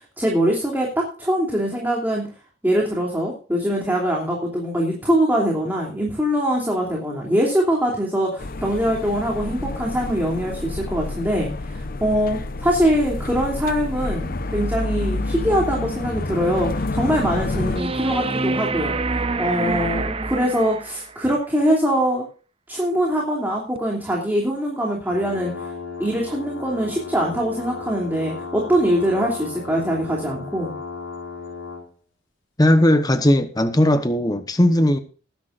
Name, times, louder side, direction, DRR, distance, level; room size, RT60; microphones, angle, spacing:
voice 1, 0.0-2.2 2.6-18.9 19.4-22.2 22.7-25.7 26.0-30.7, equal, 10° right, 2.9 m, -23 dB
sound 1, 8.4-17.8, left 2 dB, 45° left, 0.8 m, -28 dB
sound 2, 17.8-21.1 23.8-23.9, right 3 dB, 30° right, 0.7 m, -26 dB
sound 3, 25.1-31.9, left 4 dB, 70° left, 5.5 m, -35 dB
voice 2, 32.6-35.0, left 1 dB, 20° left, 1.0 m, -17 dB
20.0 x 10.5 x 2.5 m
head